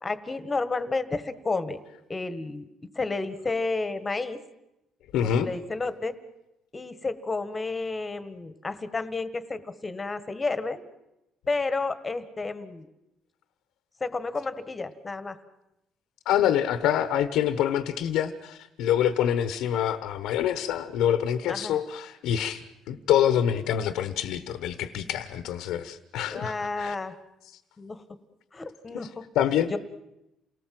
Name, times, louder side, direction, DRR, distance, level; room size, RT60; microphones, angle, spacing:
voice 1, 0.0-1.8 2.1-2.7 2.9-4.4 5.4-6.1 6.7-10.8 11.5-12.9 14.0-15.4 21.4-21.8 26.3-27.1 27.8-28.0 28.5-29.2 29.7-29.8, left 3 dB, 20° left, 12 dB, 1.6 m, -31 dB
voice 2, 5.1-5.5 16.2-26.9 28.9-29.1 29.3-29.8, left 10 dB, 85° left, 11 dB, 1.2 m, -26 dB
29.0 x 19.0 x 7.7 m, 0.90 s
cardioid pair, 125°, 0 cm